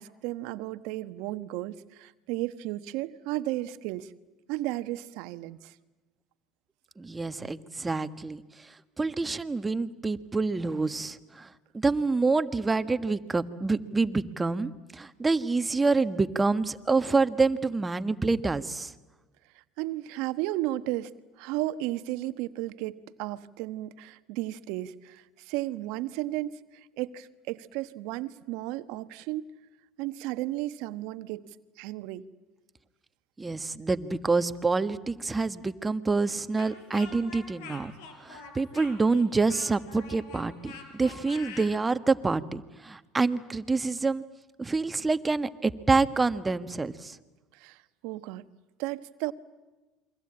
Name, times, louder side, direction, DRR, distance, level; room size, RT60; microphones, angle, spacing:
voice 1, 0.0-4.1 4.5-5.7 19.8-21.1 21.4-29.5 30.0-32.3 47.5-48.5 48.8-49.3, right 16 dB, 70° right, 12 dB, 1.1 m, -34 dB
voice 2, 7.0-8.7 9.0-18.9 33.4-37.9 38.2-44.2 44.6-47.2, right 3 dB, 20° right, 11 dB, 1.5 m, -27 dB
Speech, 36.6-41.7, left 4 dB, 75° left, 4.9 m, -45 dB
29.0 x 23.5 x 8.8 m, 1.1 s
hypercardioid pair, 80°, 0 cm